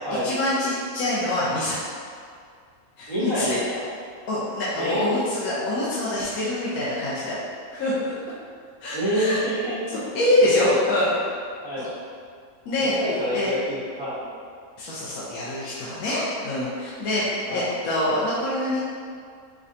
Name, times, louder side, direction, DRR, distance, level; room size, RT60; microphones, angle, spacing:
voice 1, 0.2-1.8 3.0-3.6 4.3-7.4 7.7-8.1 8.8-9.4 9.9-11.1 11.8-11.9 12.6-13.0 13.3-13.5 14.8-18.8, left 1 dB, 75° left, -9 dB, 1.1 m, -25 dB
voice 2, 3.1-3.8 4.8-5.1 8.9-9.8 10.5-10.8 11.6-11.9 13.0-14.2 17.5-17.7, equal, 20° left, -11 dB, 1.0 m, -27 dB
4.8 x 2.2 x 2.7 m, 2.2 s
omnidirectional pair, 1.6 m